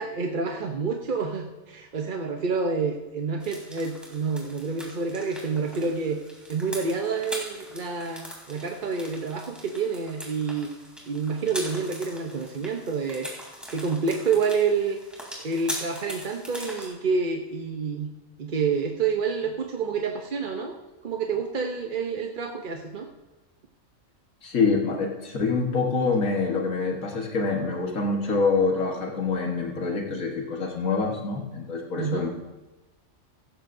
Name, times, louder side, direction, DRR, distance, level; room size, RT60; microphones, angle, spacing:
voice 1, 0.0-6.2 6.5-10.7 11.1-13.3 13.7-15.0 15.4-18.1 18.4-20.8 21.0-23.1 32.0-32.3, right 5 dB, 45° right, 2 dB, 0.8 m, -28 dB
sound 1, 3.4-16.9, equal, ahead, 3.0 m, -41 dB
voice 2, 24.4-32.3, left 4 dB, 85° left, 0 dB, 1.8 m, -26 dB
16.0 x 14.0 x 2.6 m, 1.1 s
omnidirectional pair, 1.4 m